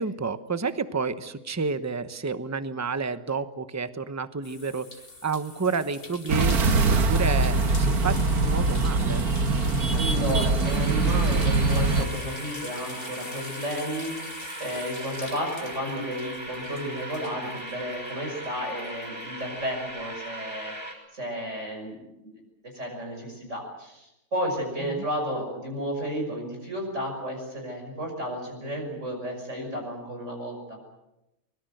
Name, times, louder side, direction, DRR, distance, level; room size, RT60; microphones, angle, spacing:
voice 1, 0.0-9.3 24.8-25.0, right 5 dB, 15° right, 11 dB, 0.8 m, -30 dB
sound 1, 4.4-18.5 18.8-20.0, left 3 dB, 40° left, 2.4 m, -44 dB
sound 2, 6.3-12.1, right 3 dB, 90° right, 2.0 m, -23 dB
voice 2, 9.9-20.7 21.1-22.0 22.7-30.8, equal, 55° right, 1 dB, 6.6 m, -32 dB
sound 3, 10.6-20.9, right 1 dB, 5° left, 5.4 m, -39 dB
24.0 x 22.0 x 7.9 m, 0.93 s
omnidirectional pair, 1.5 m